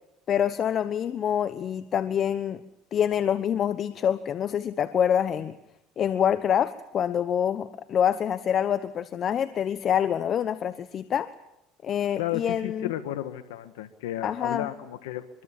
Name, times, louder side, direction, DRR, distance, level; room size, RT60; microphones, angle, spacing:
voice 1, 0.3-2.6 2.9-5.5 6.0-11.3 11.8-12.9 14.2-14.7, left 9 dB, 45° left, 12 dB, 1.1 m, -26 dB
voice 2, 12.2-15.4, left 13 dB, 90° left, 9 dB, 1.6 m, -33 dB
25.0 x 23.0 x 7.5 m, 0.87 s
supercardioid pair, 95°, 0 cm